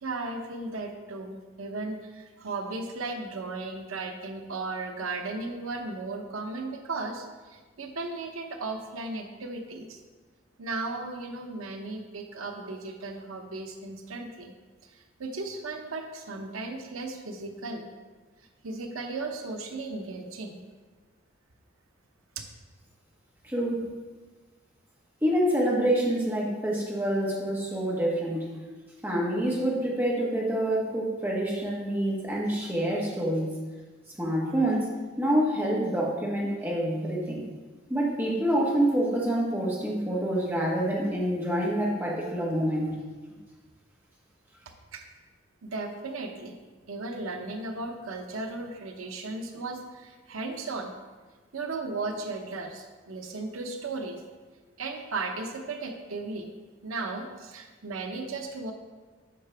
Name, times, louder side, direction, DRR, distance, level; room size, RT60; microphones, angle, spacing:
voice 1, 0.0-10.0 10.6-14.5 14.9-17.9 18.6-20.6 44.9-45.1 45.6-46.6 46.9-50.9 51.5-54.2 54.8-56.5 56.8-58.7, right 3 dB, 90° right, 4 dB, 0.8 m, -36 dB
voice 2, 23.4-23.9 25.2-28.5 29.0-33.5 34.2-34.9 35.2-37.4 37.9-43.0, right 1 dB, 10° right, -4 dB, 1.3 m, -27 dB
8.4 x 5.7 x 3.4 m, 1.4 s
head